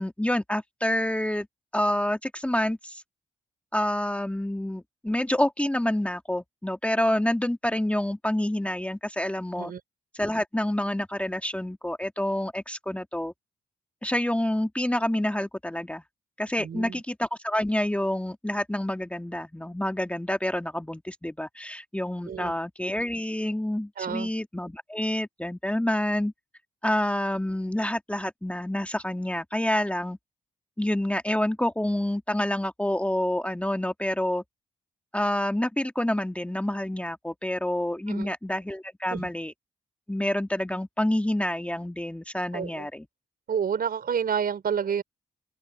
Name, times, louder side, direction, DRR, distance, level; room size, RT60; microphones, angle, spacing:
voice 1, 0.0-1.5 1.7-3.0 3.7-9.7 10.1-13.3 14.0-16.0 16.4-26.3 26.8-30.2 30.8-34.4 35.1-39.5 40.1-43.1, left 1 dB, 5° left, 1.9 m, -28 dB
voice 2, 16.6-17.0 22.3-22.5 24.0-24.3 38.1-38.3 39.1-39.3 42.5-42.9 43.5-45.0, right 7 dB, 65° right, 5.3 m, -29 dB
open air
supercardioid pair, 55°, 17 cm